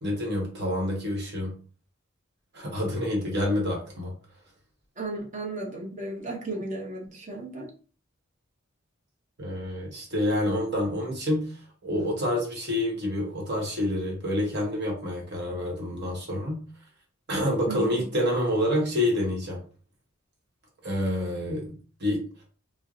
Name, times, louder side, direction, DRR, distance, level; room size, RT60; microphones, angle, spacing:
voice 1, 0.0-1.5 2.5-4.1 9.4-11.5 11.8-16.6 17.3-19.6 20.8-22.2, left 1 dB, 55° right, -1 dB, 1.1 m, -28 dB
voice 2, 5.0-7.7 17.7-18.0, right 2 dB, 35° right, 0 dB, 0.8 m, -35 dB
4.4 x 2.1 x 2.5 m, 0.39 s
head